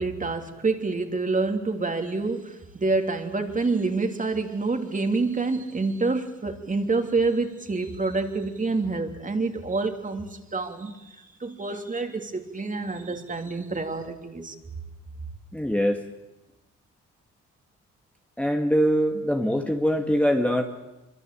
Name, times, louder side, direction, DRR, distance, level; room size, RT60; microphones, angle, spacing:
voice 1, 0.0-14.5, right 3 dB, 25° right, 3.2 m, -27 dB
voice 2, 15.5-16.0 18.4-20.6, equal, 5° left, 2.1 m, -23 dB
25.5 x 24.0 x 8.6 m
cardioid pair, 90°, 30 cm